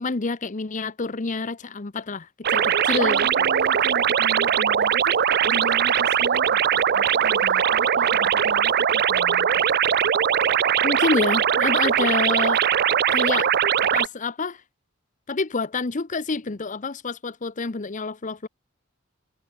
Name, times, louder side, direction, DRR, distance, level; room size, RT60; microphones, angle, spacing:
voice 1, 0.0-3.5 10.8-12.7 13.1-13.5 13.9-14.6 15.3-18.5, left 3 dB, 40° left, 0.8 m, -28 dB
sound 1, 2.4-14.1, right 8 dB, 55° right, 0.6 m, -20 dB
voice 2, 2.5-9.6, right 2 dB, 70° right, 4.3 m, -36 dB
head